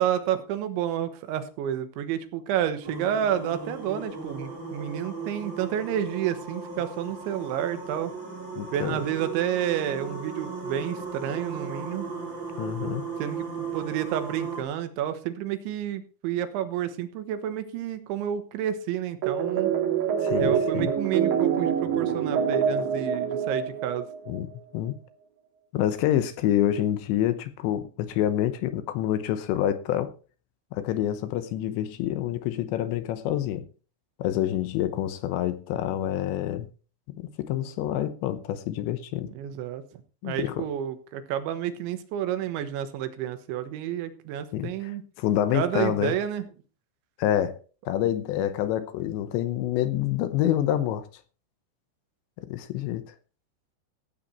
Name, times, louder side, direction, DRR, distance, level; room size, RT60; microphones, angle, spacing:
voice 1, 0.0-8.1 8.7-12.1 13.2-19.7 20.4-24.0 39.3-39.8 40.2-45.0 45.5-46.4, right 10 dB, 85° right, 3.4 m, -30 dB
sound 1, 2.8-14.6, right 4 dB, 30° right, 2.7 m, -36 dB
voice 2, 8.6-9.0 12.6-13.0 20.2-20.9 24.3-25.0 25.7-30.1 30.7-33.7 34.2-36.7 37.2-39.3 40.2-40.7 44.5-46.1 47.2-47.6 47.9-51.1 52.4-53.1, left 12 dB, 80° left, 3.1 m, -27 dB
sound 2, 19.2-24.4, right 8 dB, 55° right, 3.8 m, -26 dB
16.0 x 8.3 x 4.3 m
omnidirectional pair, 5.4 m